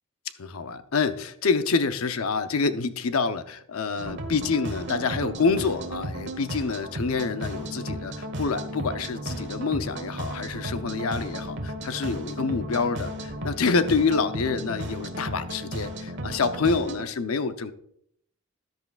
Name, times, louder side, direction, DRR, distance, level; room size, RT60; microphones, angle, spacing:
voice 1, 0.4-17.7, left 4 dB, 85° left, 10 dB, 0.7 m, -27 dB
sound 1, 4.0-17.0, right 1 dB, 60° right, 1.3 m, -34 dB
13.5 x 10.5 x 2.4 m, 0.70 s
head